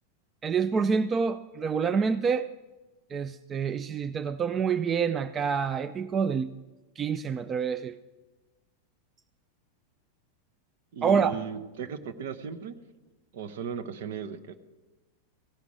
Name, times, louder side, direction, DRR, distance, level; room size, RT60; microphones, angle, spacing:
voice 1, 0.4-2.5 3.1-6.5 7.0-8.0 11.0-11.4, right 6 dB, 25° right, 11 dB, 0.4 m, -27 dB
voice 2, 10.9-12.8 13.3-14.6, right 7 dB, 55° right, 9 dB, 0.8 m, -36 dB
16.5 x 6.0 x 7.8 m, 1.2 s
figure-of-eight pair, 90°, 0 cm